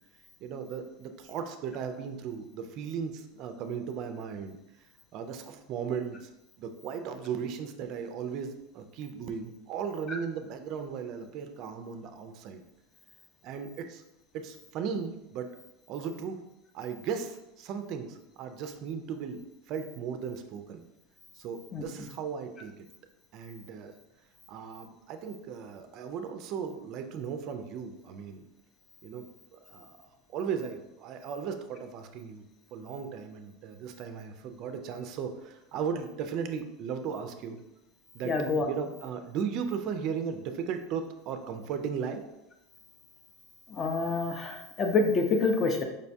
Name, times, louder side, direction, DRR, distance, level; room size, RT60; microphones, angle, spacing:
voice 1, 0.4-4.6 5.1-6.3 6.6-12.6 13.4-14.0 14.3-15.5 15.9-16.4 16.7-20.8 21.4-22.9 23.3-23.9 24.5-28.4 29.0-32.4 32.7-37.6 38.1-38.3 38.6-42.2, right 7 dB, 50° right, 7 dB, 0.3 m, -36 dB
voice 2, 38.2-38.7 43.7-45.8, left 3 dB, 30° left, 4 dB, 0.5 m, -27 dB
5.0 x 2.2 x 2.6 m, 0.92 s
supercardioid pair, 120°, 0 cm